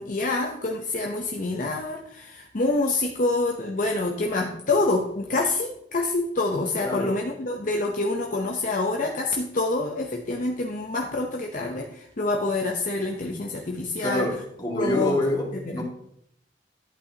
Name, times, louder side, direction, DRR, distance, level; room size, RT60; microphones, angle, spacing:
voice 1, 0.0-14.4 14.7-15.2 15.5-15.8, left 2 dB, 50° left, 2 dB, 0.8 m, -27 dB
voice 2, 6.8-7.1 14.0-15.8, left 1 dB, 25° left, -1 dB, 2.0 m, -26 dB
11.0 x 8.4 x 2.8 m, 0.72 s
head